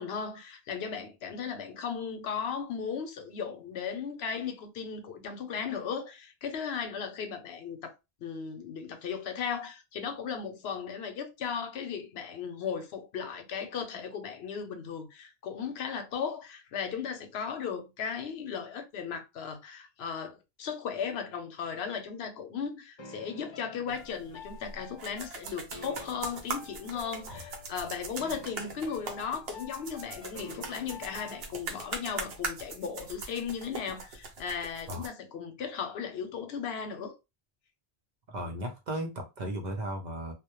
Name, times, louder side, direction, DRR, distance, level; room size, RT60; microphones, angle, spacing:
voice 1, 0.0-7.9 8.2-37.2, left 6 dB, 85° left, 0.8 m, -36 dB
sound 1, 23.0-31.9, left 3 dB, 45° left, 0.3 m, -49 dB
sound 2, 23.9-35.1, right 4 dB, 80° right, 0.9 m, -41 dB
voice 2, 38.3-40.3, right 1 dB, 55° right, 0.6 m, -36 dB
2.1 x 2.0 x 2.9 m
omnidirectional pair, 1.0 m